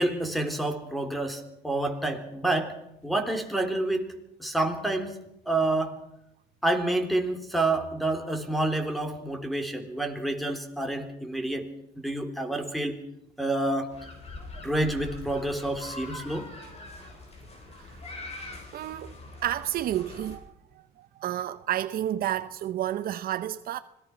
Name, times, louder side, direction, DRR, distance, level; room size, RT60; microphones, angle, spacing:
voice 1, 0.0-2.7 3.0-4.1 4.4-5.2 5.5-5.9 6.6-11.7 12.0-13.0 13.4-13.9 14.6-16.5, right 2 dB, ahead, 3.6 m, -28 dB
sound 1, 13.9-20.4, left 2 dB, 40° left, 7.8 m, -43 dB
voice 2, 18.7-23.8, right 12 dB, 60° right, 0.8 m, -31 dB
25.5 x 18.5 x 6.1 m
cardioid pair, 110°, 17 cm